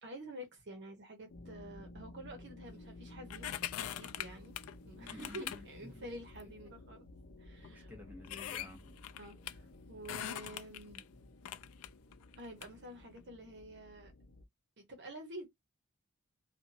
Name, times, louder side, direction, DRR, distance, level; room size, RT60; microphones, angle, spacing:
voice 1, 0.0-3.6 3.9-4.6 4.8-7.1 7.4-7.9 9.2-11.0 12.4-14.1 14.8-15.5, right 1 dB, 55° right, 1.0 m, -49 dB
sound 1, 1.3-14.5, left 2 dB, 60° left, 0.7 m, -54 dB
sound 2, 3.3-4.8 5.1-5.6 6.4-6.5 7.3-7.4 7.6-7.7 8.2-9.5 10.0-11.0 11.4-12.7 13.2-13.3, left 11 dB, 80° left, 0.3 m, -42 dB
voice 2, 5.0-5.7 5.9-6.0 6.4-6.5 7.6-8.9, left 1 dB, 10° right, 1.1 m, -51 dB
2.8 x 2.5 x 2.6 m
head